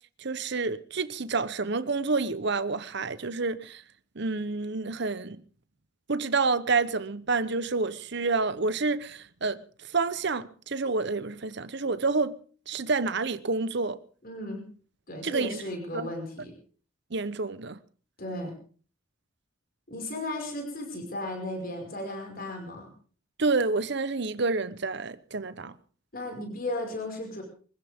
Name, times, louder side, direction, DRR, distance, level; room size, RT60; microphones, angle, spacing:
voice 1, 0.2-3.8 4.2-5.4 6.1-9.6 9.9-12.3 12.7-14.0 15.2-15.6 15.9-16.0 17.1-17.8 23.4-25.7, right 3 dB, 55° right, 0.9 m, -28 dB
voice 2, 14.2-14.6 15.1-16.5 18.2-18.5 19.9-22.9 26.1-27.4, left 1 dB, 45° left, 5.5 m, -35 dB
24.0 x 15.5 x 3.7 m
head